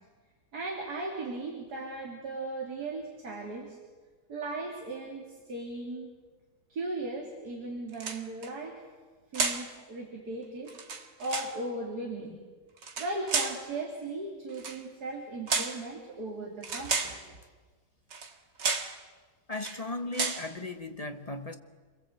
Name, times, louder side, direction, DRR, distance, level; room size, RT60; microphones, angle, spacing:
voice 1, 0.5-3.8 4.3-6.1 6.7-8.8 9.3-10.7 11.2-12.4 13.0-17.4, right 2 dB, 60° right, -1 dB, 3.5 m, -37 dB
sound 1, 7.9-8.5 9.3-9.7 10.7-11.6 12.8-13.6 14.5-14.8 15.5-15.8 16.6-17.2 18.1-18.3 18.6-19.0 19.5-19.8 20.1-20.5, right 5 dB, 90° right, 2.4 m, -32 dB
voice 2, 19.5-21.5, left 2 dB, 25° left, 6 dB, 1.1 m, -36 dB
28.5 x 22.0 x 8.0 m, 1.4 s
omnidirectional pair, 1.9 m